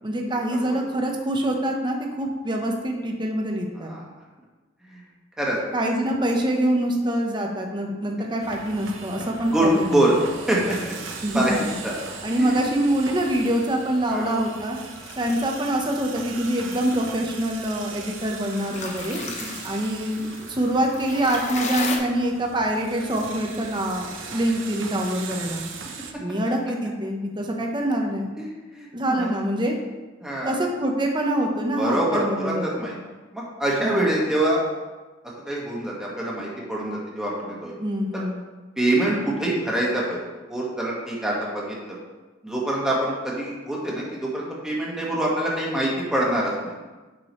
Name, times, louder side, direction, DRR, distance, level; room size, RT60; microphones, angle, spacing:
voice 1, 0.0-3.9 5.7-10.0 11.2-11.6 12.2-14.8 15.2-19.2 19.6-25.6 26.2-28.3 28.9-29.8 30.4-32.7 33.8-34.1 37.8-38.3, right 1 dB, 25° right, 1 dB, 1.0 m, -25 dB
sound 1, 8.4-26.1, right 4 dB, 85° right, 0.9 m, -39 dB
voice 2, 9.5-10.1 10.5-12.0 12.4-12.6 14.1-14.3 15.2-15.4 19.2-19.6 28.4-29.3 30.2-30.6 31.8-32.9 33.3-34.6 35.4-37.7 38.1-38.2 38.8-40.2 40.5-41.9 42.4-46.7, right 1 dB, 5° right, -5 dB, 1.7 m, -25 dB
sound 2, 10.9-22.0, left 4 dB, 40° left, 0.9 m, -39 dB
8.6 x 6.1 x 3.2 m, 1.2 s
head